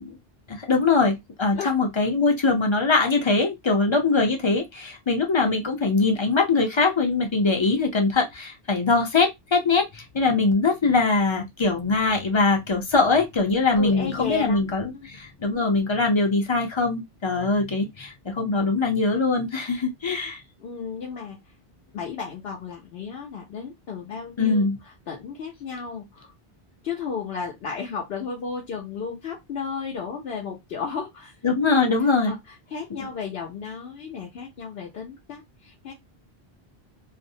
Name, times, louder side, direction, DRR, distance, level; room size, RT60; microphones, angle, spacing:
voice 1, 0.5-20.4 24.4-24.8 31.4-32.3 32.9-33.1, left 3 dB, 35° left, 0.5 m, -22 dB
voice 2, 13.7-14.6 14.9-15.1 15.6-15.8 20.6-21.4 21.9-24.7 25.1-26.3 26.8-31.3 32.2-35.9, left 5 dB, 75° left, 0.9 m, -34 dB
2.5 x 2.0 x 2.6 m
omnidirectional pair, 1.1 m